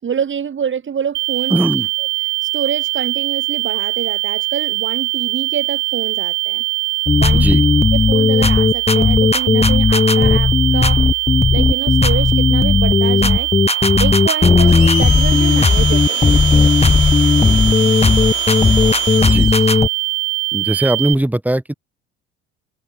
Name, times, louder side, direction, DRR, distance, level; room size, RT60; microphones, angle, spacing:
voice 1, 0.0-1.6 2.5-6.6 7.1-7.5 8.1-11.0 11.5-13.5 14.0-16.2, right 7 dB, 40° right, 6.3 m, -26 dB
sound 1, 1.1-21.1, right 37 dB, 70° right, 2.3 m, -22 dB
voice 2, 1.5-1.9 7.3-7.6 17.4-17.9 19.2-19.5 20.5-21.7, right 1 dB, 5° right, 7.6 m, -20 dB
sound 2, 7.1-19.9, left 4 dB, 20° left, 1.5 m, -14 dB
Domestic sounds home sounds, 14.7-19.8, left 22 dB, 75° left, 2.5 m, -28 dB
hypercardioid pair, 70°, 31 cm